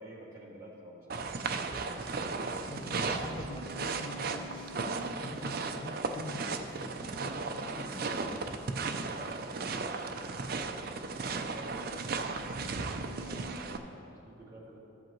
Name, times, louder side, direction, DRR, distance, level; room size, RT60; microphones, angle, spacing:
voice 1, 0.0-1.6 9.0-12.6 13.1-14.8, equal, 15° right, -8 dB, 2.1 m, -51 dB
sound 1, 1.1-13.8, right 4 dB, 45° right, 0.4 m, -36 dB
voice 2, 2.7-8.5, left 1 dB, 25° left, 0 dB, 0.4 m, -44 dB
14.5 x 7.7 x 3.1 m, 2.9 s
head